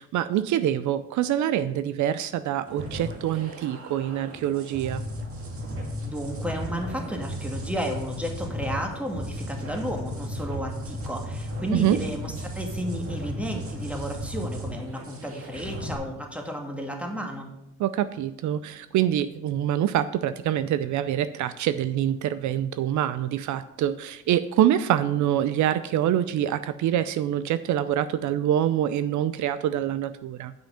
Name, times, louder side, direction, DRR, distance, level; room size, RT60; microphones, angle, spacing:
voice 1, 0.0-5.0 11.7-12.0 17.8-30.5, right 11 dB, 75° right, 13 dB, 0.5 m, -25 dB
sound 1, 2.7-15.9, equal, 50° right, 1.9 m, -35 dB
voice 2, 6.0-17.5, equal, 5° right, 2 dB, 1.9 m, -33 dB
8.9 x 5.6 x 5.7 m, 0.83 s
cardioid pair, 90°, 30 cm